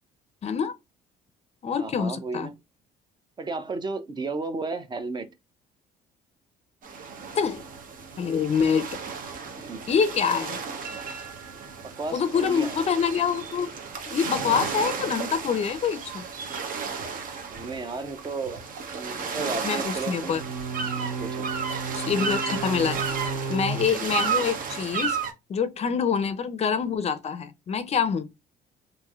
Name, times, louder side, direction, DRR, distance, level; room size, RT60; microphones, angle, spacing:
voice 1, 0.4-0.7 1.6-2.5 7.3-7.6 8.2-8.9 9.9-10.6 12.1-13.7 14.1-16.2 19.2-19.3 19.6-20.4 21.9-23.0 23.5-25.2 25.5-28.3, left 6 dB, 40° left, 0.5 m, -26 dB
voice 2, 1.8-2.5 3.4-5.3 9.6-9.8 12.0-12.8 17.5-18.6 18.9-20.4 21.0-21.5, right 3 dB, 25° right, 0.5 m, -33 dB
sound 1, 6.8-25.3, right 5 dB, 55° right, 0.8 m, -32 dB
3.0 x 2.6 x 2.4 m
cardioid pair, 110°, 17 cm